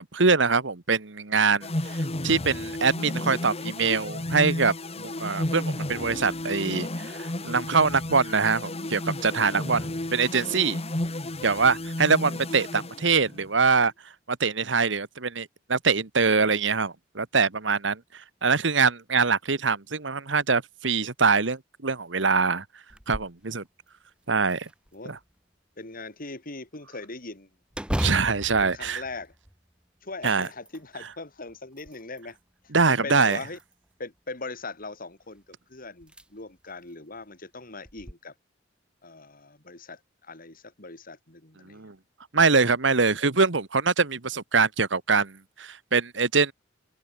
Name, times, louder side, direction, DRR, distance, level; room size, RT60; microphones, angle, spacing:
voice 1, 0.0-10.8 11.4-13.9 14.3-22.6 23.1-23.6 24.3-24.7 25.1-25.2 28.0-29.0 30.2-30.5 32.7-33.4 41.6-41.9 42.3-46.5, right 4 dB, 70° right, 1.6 m, -24 dB
sound 1, 1.6-13.5, left 1 dB, 35° left, 2.3 m, -32 dB
sound 2, 22.9-23.4 23.9-24.0 24.5-25.3 27.7-29.7 30.1-30.9 31.5-32.3 33.2-33.9 35.4-35.5 36.0-36.2 36.7-36.8 37.9-38.1, equal, 5° right, 1.4 m, -34 dB
voice 2, 25.8-27.5 28.6-29.3 30.0-32.4 32.6-33.6 34.0-38.3 39.0-41.9, left 3 dB, 50° left, 3.9 m, -40 dB
open air
head